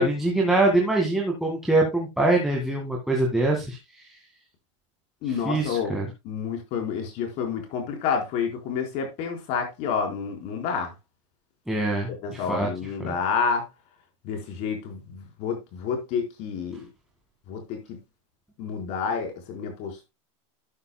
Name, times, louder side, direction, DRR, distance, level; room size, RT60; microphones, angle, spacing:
voice 1, 0.0-4.0 5.3-6.1 11.7-12.7 13.0-13.1, right 2 dB, ahead, 2.0 m, -24 dB
voice 2, 5.2-6.0 6.2-10.9 12.2-13.6 14.2-16.9 17.5-17.8 18.6-20.1, left 6 dB, 40° left, 4.3 m, -29 dB
12.0 x 9.6 x 2.3 m
supercardioid pair, 160°, 17 cm